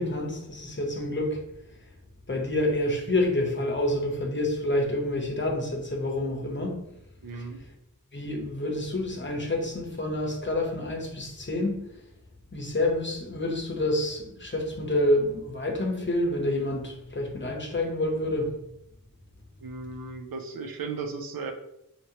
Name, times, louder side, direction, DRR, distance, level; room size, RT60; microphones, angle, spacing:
voice 1, 0.0-1.4 2.3-6.8 7.3-7.5 8.1-11.8 12.5-18.6, left 1 dB, 35° left, 0.8 m, -28 dB
voice 2, 7.2-7.6 19.6-21.5, right 4 dB, 90° right, 0.5 m, -36 dB
2.9 x 2.8 x 2.8 m
wide cardioid pair, 50°, 35 cm